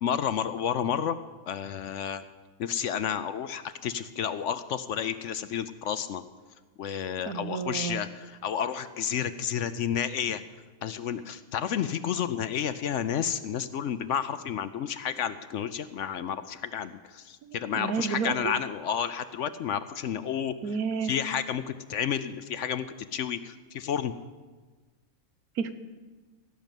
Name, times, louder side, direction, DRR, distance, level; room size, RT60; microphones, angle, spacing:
voice 1, 0.0-1.2 1.5-2.2 2.6-6.2 6.8-10.4 10.8-20.5 21.0-21.6 21.9-22.9 23.1-24.1, left 8 dB, 65° left, 12 dB, 0.8 m, -31 dB
voice 2, 7.3-8.0 17.4-18.6 20.6-21.1 25.6-25.7, right 6 dB, 80° right, 10 dB, 1.4 m, -31 dB
17.0 x 6.6 x 9.0 m, 1.3 s
omnidirectional pair, 1.5 m